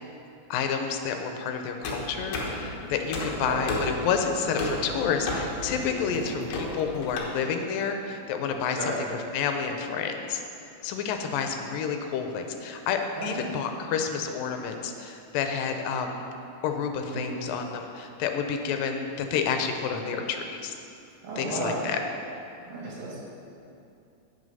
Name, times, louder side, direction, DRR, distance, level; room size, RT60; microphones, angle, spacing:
voice 1, 0.5-10.4 10.8-16.2 16.6-20.7 21.4-22.0, left 6 dB, 80° left, 5 dB, 2.3 m, -29 dB
sound 1, 1.8-7.2, left 2 dB, 60° left, 1.9 m, -33 dB
voice 2, 17.1-17.4 21.2-21.8 22.7-23.3, right 2 dB, 80° right, -9 dB, 4.4 m, -34 dB
8.3 x 8.3 x 5.5 m, 2.7 s
omnidirectional pair, 4.2 m